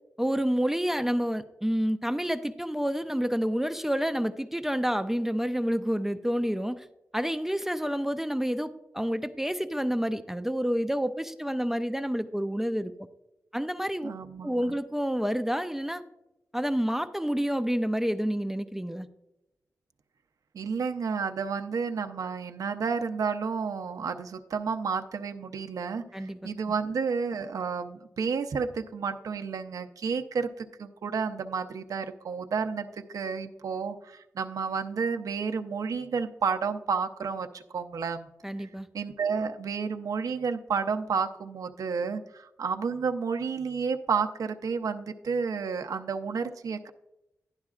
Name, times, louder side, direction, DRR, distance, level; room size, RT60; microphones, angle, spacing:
voice 1, 0.2-6.9 7.1-12.9 13.5-14.1 14.4-16.0 16.5-19.1 26.1-26.4 38.4-38.9, equal, 5° right, 9 dB, 0.4 m, -29 dB
voice 2, 14.0-14.7 20.5-38.3 38.6-38.7 38.9-46.9, right 5 dB, 75° right, 7 dB, 0.6 m, -31 dB
11.5 x 10.5 x 2.4 m, 0.90 s
wide cardioid pair, 110°, 6 cm